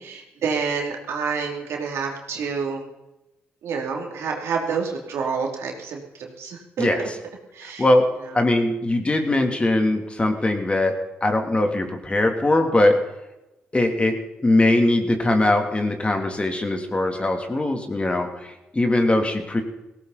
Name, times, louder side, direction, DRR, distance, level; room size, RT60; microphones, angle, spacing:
voice 1, 0.0-2.8 3.6-7.1 7.5-7.9 8.2-8.4, right 5 dB, 80° right, 1 dB, 2.9 m, -28 dB
voice 2, 7.6-8.0 8.3-12.9 13.7-14.2 14.4-19.6, left 2 dB, 25° left, 4 dB, 3.0 m, -21 dB
18.0 x 17.0 x 4.1 m, 0.98 s
supercardioid pair, 60°, 5 cm